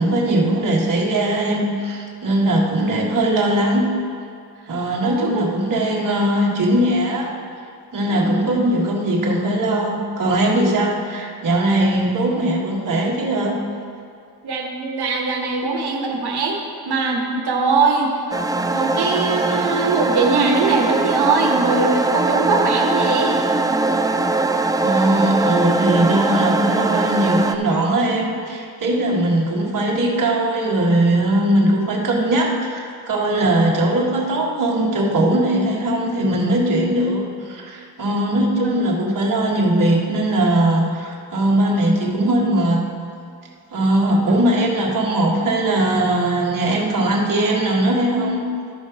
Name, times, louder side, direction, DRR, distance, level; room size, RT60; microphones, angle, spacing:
voice 1, 0.0-3.9 4.7-7.3 7.9-13.6 24.8-42.9 43.7-48.5, right 1 dB, 55° right, -2 dB, 1.7 m, -20 dB
voice 2, 5.0-5.5 8.1-8.3 14.4-16.6 16.8-18.1 18.7-23.5 38.6-38.8 44.2-44.3, right 4 dB, 70° right, 0 dB, 1.6 m, -21 dB
sound 1, 18.3-27.6, right 3 dB, 10° right, 0.3 m, -21 dB
13.0 x 5.4 x 4.9 m, 2.4 s
cardioid pair, 110°, 40 cm